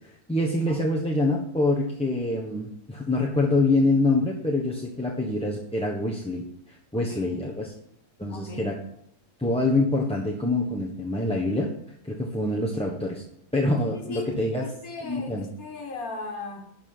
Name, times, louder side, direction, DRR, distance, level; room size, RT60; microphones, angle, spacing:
voice 1, 0.3-7.7 8.2-8.8 9.4-11.7 12.0-13.2 13.5-14.7 15.1-15.4, left 2 dB, 5° left, -3 dB, 1.1 m, -25 dB
voice 2, 6.9-7.4 8.3-8.7 12.4-12.6 13.8-16.8, left 3 dB, 70° left, 3 dB, 2.3 m, -38 dB
11.5 x 6.0 x 7.2 m, 0.69 s
omnidirectional pair, 1.6 m